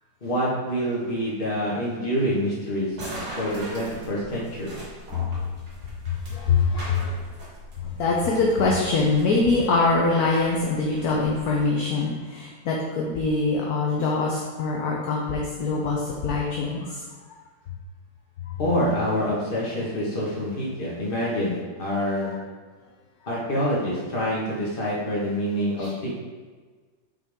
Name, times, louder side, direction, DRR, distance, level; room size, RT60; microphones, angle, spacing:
voice 1, 0.2-3.0 3.4-4.8 18.6-22.3 23.3-26.2, equal, 30° left, -6 dB, 1.8 m, -26 dB
sound 1, 2.9-11.7, right 1 dB, 65° right, 2.3 m, -41 dB
voice 2, 6.3-7.1 7.8-17.0 18.5-18.6 22.2-22.3 25.8-25.9, left 3 dB, 60° left, -2 dB, 1.2 m, -24 dB
6.0 x 5.6 x 3.6 m, 1.4 s
omnidirectional pair, 2.0 m